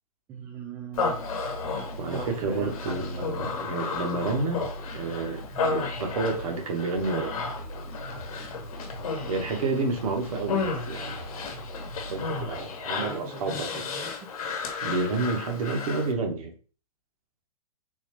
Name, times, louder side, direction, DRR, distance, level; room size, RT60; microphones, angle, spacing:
voice 1, 0.3-1.2 2.1-3.3 5.5-5.8 9.6-9.9 12.9-14.3, right 4 dB, 10° right, 1 dB, 0.3 m, -39 dB
Human voice, 0.9-16.1, left 5 dB, 60° left, 1.0 m, -33 dB
sound 1, 0.9-13.2, right 1 dB, 35° left, 0.8 m, -41 dB
voice 2, 2.0-4.7 4.9-7.4 9.3-11.2 12.1-13.8 14.8-16.5, right 3 dB, 60° right, 4 dB, 1.0 m, -30 dB
3.8 x 2.3 x 3.0 m, 0.37 s
hypercardioid pair, 150°, 20 cm